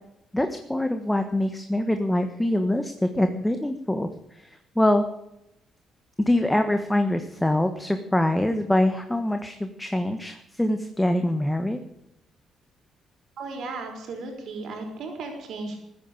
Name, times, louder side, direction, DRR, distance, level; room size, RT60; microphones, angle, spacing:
voice 1, 0.3-5.1 6.2-11.8, left 1 dB, 5° left, 7 dB, 1.5 m, -24 dB
voice 2, 13.4-15.8, right 3 dB, 70° right, 3 dB, 5.3 m, -35 dB
15.0 x 9.5 x 9.0 m, 0.84 s
cardioid pair, 90°, 0 cm